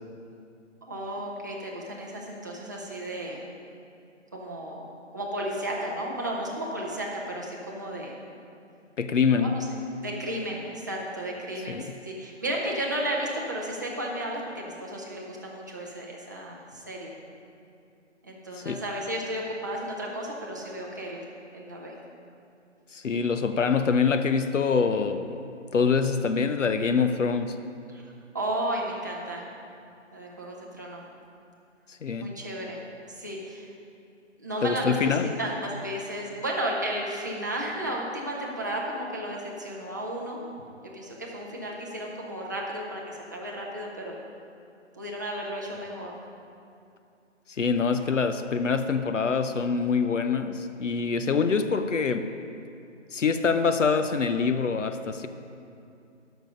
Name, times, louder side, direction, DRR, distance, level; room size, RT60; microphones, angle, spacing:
voice 1, 0.9-3.4 4.3-8.1 9.4-17.2 18.2-21.2 21.5-22.0 27.9-28.0 28.3-29.5 30.1-31.0 32.2-32.8 33.1-33.7 34.4-40.4 40.8-44.2 44.9-46.1, right 1 dB, 15° right, -3 dB, 0.6 m, -33 dB
voice 2, 9.0-9.6 11.7-11.9 18.6-18.8 22.9-25.4 25.7-27.6 31.9-32.3 34.6-35.3 47.5-52.3 53.1-55.3, left 5 dB, 75° left, 9 dB, 0.7 m, -25 dB
12.0 x 6.2 x 5.3 m, 2.6 s
figure-of-eight pair, 150°, 37 cm